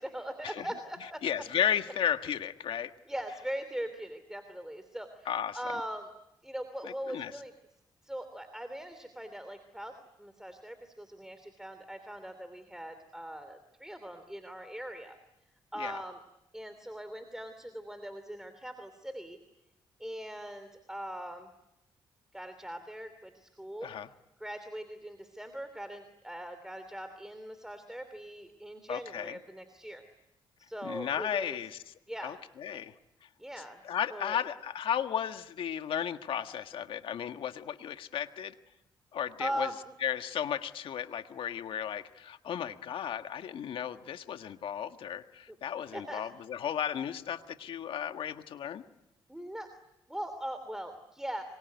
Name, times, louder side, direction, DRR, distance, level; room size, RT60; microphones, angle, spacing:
voice 1, 0.0-1.2 3.1-5.3 5.5-6.1 6.4-7.5 8.0-15.2 15.7-16.2 16.5-19.4 20.0-21.5 22.3-23.9 24.4-30.0 30.6-31.6 32.1-32.3 32.7-32.8 33.4-33.8 34.1-34.4 39.4-39.8 45.9-46.2 49.3-49.7 50.1-51.4, right 1 dB, 5° right, 9 dB, 2.9 m, -40 dB
voice 2, 1.2-2.9 5.2-5.6 6.8-7.3 15.7-16.0 23.8-24.1 28.9-29.4 30.8-31.8 32.2-32.9 33.8-38.6 39.1-39.7 40.0-48.8, left 9 dB, 75° left, 8 dB, 1.6 m, -34 dB
25.5 x 24.0 x 9.4 m, 0.90 s
cardioid pair, 80°, 9 cm